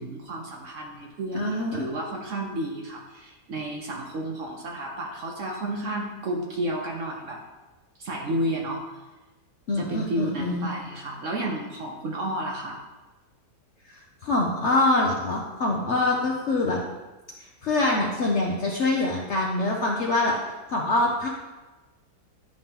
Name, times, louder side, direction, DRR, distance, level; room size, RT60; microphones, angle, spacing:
voice 1, 0.0-7.4 8.0-8.8 9.8-12.8, right 1 dB, 55° right, 0 dB, 1.0 m, -32 dB
voice 2, 1.3-1.8 9.7-10.7 14.2-16.8 17.6-20.3 20.7-21.3, left 2 dB, 60° left, -1 dB, 0.8 m, -24 dB
10.5 x 3.5 x 2.9 m, 1.1 s
omnidirectional pair, 1.8 m